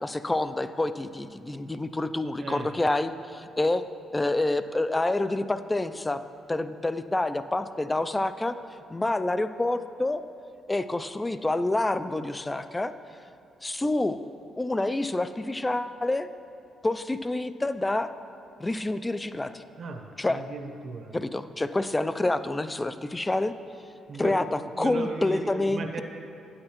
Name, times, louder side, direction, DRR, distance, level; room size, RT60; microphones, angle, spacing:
voice 1, 0.0-3.8 4.1-6.2 6.5-8.5 8.9-10.2 10.7-12.9 13.6-14.2 14.6-16.3 16.8-18.1 18.6-19.6 20.2-20.4 21.1-23.5 24.2-26.0, left 2 dB, 15° left, 11 dB, 0.3 m, -27 dB
voice 2, 20.3-21.2 24.1-24.3 24.8-26.0, right 3 dB, 55° right, 4 dB, 0.9 m, -36 dB
9.4 x 8.6 x 3.0 m, 2.5 s
cardioid pair, 90°, 0 cm